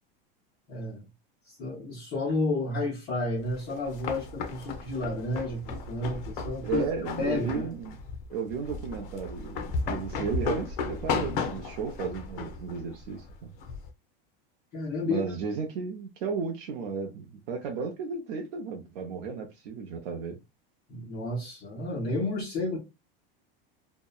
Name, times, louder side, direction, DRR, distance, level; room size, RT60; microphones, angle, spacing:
voice 1, 0.7-1.0 1.5-6.8 7.2-7.7 14.7-15.2 20.9-22.8, left 2 dB, 30° left, 0.8 m, -31 dB
sound 1, 3.5-13.9, left 4 dB, 60° left, 0.7 m, -35 dB
voice 2, 6.6-8.0 8.3-13.2 15.1-20.4 21.9-22.0, right 5 dB, 65° right, 0.6 m, -34 dB
2.7 x 2.1 x 2.3 m
supercardioid pair, 170°, 29 cm